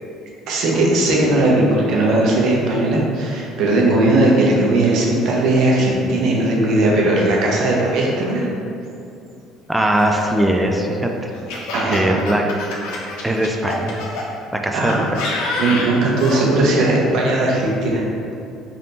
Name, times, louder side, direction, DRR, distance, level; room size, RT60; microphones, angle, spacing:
voice 1, 0.5-8.5 11.7-12.2 14.7-15.0 15.5-18.0, right 2 dB, 65° right, -3 dB, 0.8 m, -18 dB
voice 2, 9.7-11.3 11.9-12.4 13.2-14.0 14.6-15.1, right 1 dB, 10° right, 2 dB, 0.4 m, -20 dB
Laughter, 9.9-14.3 14.9-16.4, left 2 dB, 75° left, 0.6 m, -27 dB
3.4 x 2.7 x 4.0 m, 2.6 s
supercardioid pair, 75°, 0 cm